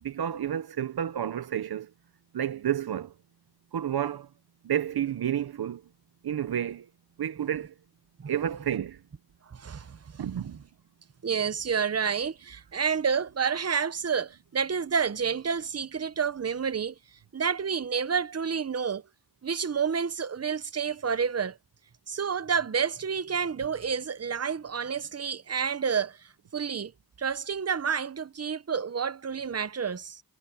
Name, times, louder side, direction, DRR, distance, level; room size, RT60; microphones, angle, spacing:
voice 1, 0.0-1.9 2.3-3.1 3.7-4.3 4.6-5.8 6.2-6.9 7.2-7.7 8.3-9.0 10.2-10.6, right 10 dB, 75° right, 0.6 m, -30 dB
voice 2, 9.5-10.2 11.2-19.0 19.4-21.6 22.1-26.9 27.2-30.2, right 6 dB, 40° right, 0.8 m, -29 dB
wide cardioid pair, 95°, 38 cm